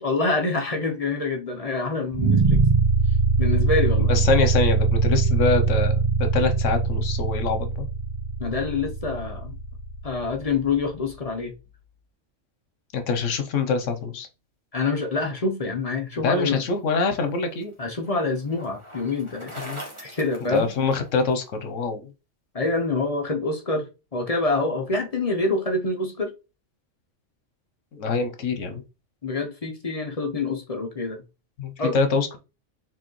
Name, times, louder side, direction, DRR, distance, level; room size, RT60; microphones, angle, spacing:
voice 1, 0.0-2.6 3.4-4.1 8.4-9.6 10.0-11.5 14.7-16.6 17.2-17.3 17.8-19.5 20.0-20.7 22.5-23.9 24.1-26.3 29.2-31.2 31.8-31.9, left 3 dB, 35° left, 0.7 m, -26 dB
sound 1, 2.1-11.2, right 4 dB, 40° right, 0.5 m, -23 dB
voice 2, 4.1-6.0 6.3-7.7 12.9-14.3 16.2-17.7 19.6-19.8 20.5-22.0 27.9-28.8 31.6-32.4, left 4 dB, 75° left, 1.1 m, -24 dB
Bicycle, 16.9-21.3, equal, 25° right, 1.5 m, -42 dB
4.6 x 3.7 x 3.1 m
omnidirectional pair, 1.3 m